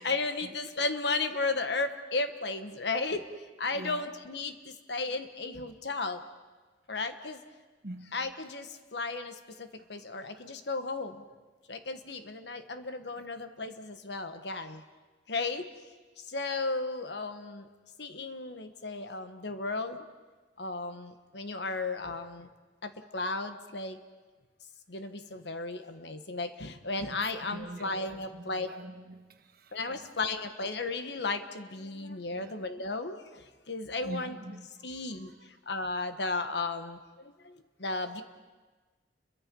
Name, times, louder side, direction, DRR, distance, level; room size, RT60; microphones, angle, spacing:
voice 1, 0.0-6.2 6.9-7.4 8.1-11.2 11.7-14.8 15.3-15.7 16.2-17.7 18.0-20.0 20.6-22.5 22.8-24.0 24.9-28.7 29.7-34.4 34.8-38.2, left 3 dB, 65° left, 8 dB, 1.3 m, -34 dB
voice 2, 7.8-8.1 27.1-27.2 27.5-30.1 32.3-32.7 34.0-34.7 35.2-35.3, right 1 dB, 55° right, 6 dB, 1.5 m, -44 dB
30.0 x 23.0 x 5.4 m, 1.3 s
head